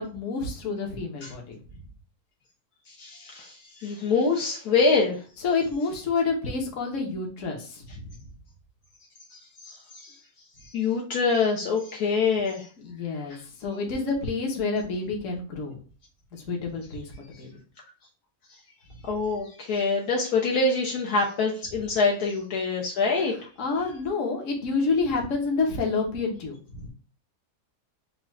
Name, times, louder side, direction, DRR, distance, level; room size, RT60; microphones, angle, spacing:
voice 1, 0.0-1.6 5.4-8.1 12.8-15.8 16.3-17.5 23.6-26.9, left 4 dB, 55° left, 1 dB, 1.3 m, -28 dB
voice 2, 2.9-5.2 9.3-10.1 10.7-12.7 19.0-23.3, left 4 dB, 70° left, -1 dB, 1.3 m, -25 dB
4.9 x 2.4 x 3.1 m, 0.37 s
omnidirectional pair, 1.7 m